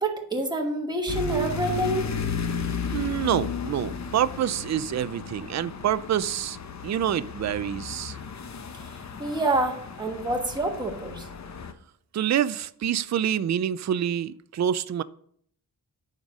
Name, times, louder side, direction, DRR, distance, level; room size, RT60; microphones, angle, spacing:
voice 1, 0.0-2.1 8.7-11.3, right 2 dB, 10° right, 2 dB, 1.3 m, -27 dB
sound 1, 1.1-11.7, left 5 dB, 45° left, 0.8 m, -34 dB
voice 2, 2.9-6.6 6.8-8.2 12.1-15.0, right 10 dB, 45° right, 15 dB, 0.4 m, -27 dB
9.3 x 5.2 x 6.1 m, 0.63 s
wide cardioid pair, 140°, 40 cm